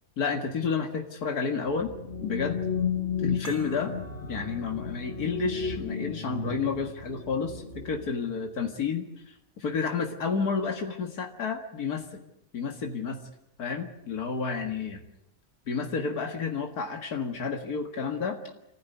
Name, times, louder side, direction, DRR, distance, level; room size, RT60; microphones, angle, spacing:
voice 1, 0.2-1.9 2.2-2.6 3.2-3.9 4.3-12.2 12.5-13.2 13.6-15.0 15.7-18.4, left 5 dB, 90° left, 3 dB, 2.3 m, -31 dB
sound 1, 1.7-8.1, left 6 dB, 40° left, 2.0 m, -33 dB
sound 2, 3.4-8.5, equal, 70° right, 4.5 m, -52 dB
27.5 x 15.0 x 9.4 m, 0.87 s
omnidirectional pair, 1.6 m